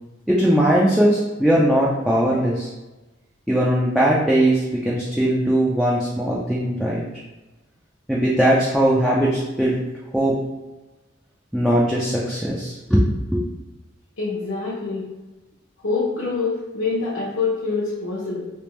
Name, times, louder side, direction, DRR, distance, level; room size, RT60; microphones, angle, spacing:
voice 1, 0.3-2.7 3.5-7.0 8.1-9.8 10.1-10.3 11.5-13.0 13.3-13.4, right 1 dB, ahead, -6 dB, 0.4 m, -19 dB
voice 2, 14.2-15.0 15.8-18.4, left 4 dB, 70° left, -7 dB, 0.8 m, -25 dB
3.4 x 2.9 x 3.0 m, 1.1 s
head